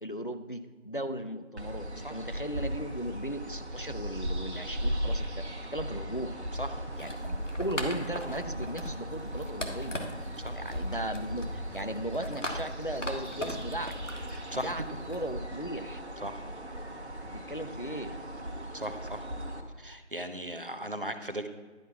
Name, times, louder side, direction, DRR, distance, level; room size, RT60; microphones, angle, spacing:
voice 1, 0.0-5.3 5.7-6.3 7.0-10.0 10.6-13.9 14.5-16.0 17.0-18.2, right 1 dB, 45° left, 8 dB, 0.5 m, -37 dB
sound 1, 1.6-19.6, equal, 60° right, 1.3 m, -38 dB
voice 2, 6.6-6.9 10.4-10.6 14.5-14.7 16.2-16.4 18.7-19.3 19.8-21.5, equal, 45° right, 8 dB, 0.7 m, -37 dB
sound 2, 6.9-15.3, left 1 dB, 80° left, 1.6 m, -40 dB
11.5 x 4.6 x 5.7 m, 1.4 s
figure-of-eight pair, 175°, 36 cm